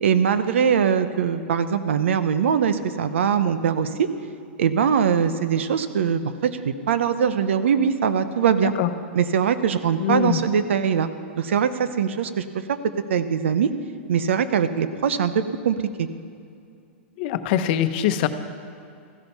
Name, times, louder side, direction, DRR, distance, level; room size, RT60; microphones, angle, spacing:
voice 1, 0.0-4.1 4.6-8.7 9.1-11.1 11.4-12.8 13.1-13.7 14.1-16.1, right 7 dB, 85° right, 12 dB, 0.8 m, -22 dB
voice 2, 10.0-10.4 17.2-18.3, left 11 dB, 55° left, 10 dB, 0.9 m, -22 dB
15.0 x 11.5 x 5.6 m, 2.4 s
hypercardioid pair, 135°, 6 cm